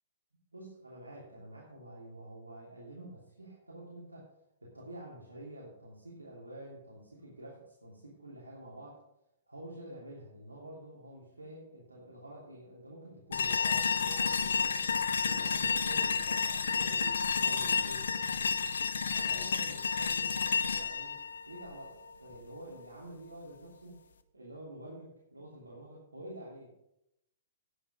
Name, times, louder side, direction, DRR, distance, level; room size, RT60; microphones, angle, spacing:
voice 1, 0.5-4.3 4.6-9.0 9.5-18.1 19.1-21.2 21.5-24.0 24.3-26.7, right 1 dB, 85° right, -5 dB, 2.9 m, -48 dB
sound 1, 13.3-22.4, left 5 dB, 60° left, 0.9 m, -31 dB
11.0 x 9.1 x 5.0 m, 0.83 s
figure-of-eight pair, 110°, 0 cm